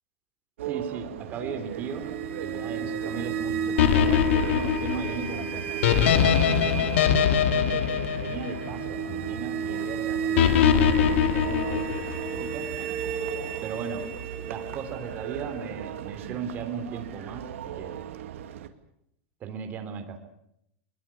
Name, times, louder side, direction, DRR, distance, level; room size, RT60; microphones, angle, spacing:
voice 1, 0.6-2.1 2.4-7.1 7.4-12.7 13.6-14.1 14.4-18.0 19.4-20.2, right 6 dB, 25° right, 7 dB, 3.2 m, -37 dB
sound 1, 0.6-18.7, right 10 dB, 90° right, 2.2 m, -38 dB
sound 2, 1.6-16.6, right 6 dB, 55° right, 5.2 m, -34 dB
sound 3, 3.8-9.1 10.4-12.3, left 9 dB, 70° left, 2.4 m, -22 dB
22.5 x 22.0 x 7.1 m, 0.76 s
supercardioid pair, 165°, 7 cm